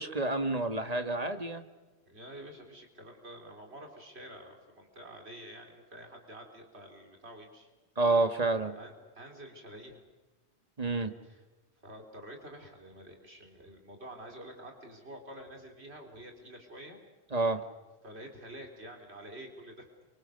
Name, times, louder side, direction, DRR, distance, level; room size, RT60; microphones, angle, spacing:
voice 1, 0.0-1.6 8.0-8.7 10.8-11.1 17.3-17.6, right 3 dB, 35° right, 7 dB, 1.9 m, -29 dB
voice 2, 2.1-7.7 8.7-10.0 11.2-11.4 11.8-17.0 18.0-19.9, right 1 dB, 80° right, 3 dB, 4.0 m, -48 dB
28.0 x 25.5 x 6.6 m, 1.2 s
omnidirectional pair, 1.1 m